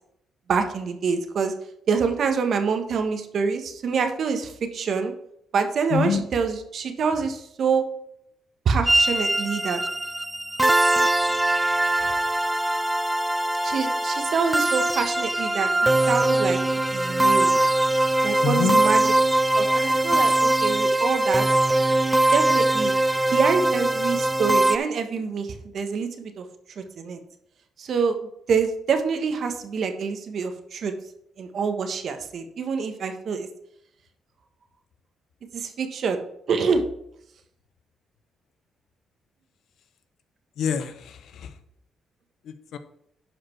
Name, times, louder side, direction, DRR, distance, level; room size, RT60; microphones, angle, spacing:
voice 1, 0.5-1.5 1.9-5.1 5.5-7.8 8.6-9.8 12.0-12.2 13.6-15.7 16.1-16.6 16.9-17.5 18.2-19.1 19.5-21.4 22.3-22.9 23.3-26.5 26.8-27.2 27.8-28.1 28.5-30.9 31.4-33.5 35.5-36.2 36.5-36.8, right 5 dB, 60° right, 7 dB, 1.3 m, -26 dB
voice 2, 5.9-6.2 18.4-18.8 40.6-41.5 42.5-42.8, left 6 dB, 70° left, 10 dB, 0.9 m, -26 dB
sound 1, 8.9-24.8, right 1 dB, 10° right, 0.4 m, -21 dB
11.0 x 5.1 x 4.6 m, 0.74 s
cardioid pair, 90°, 0 cm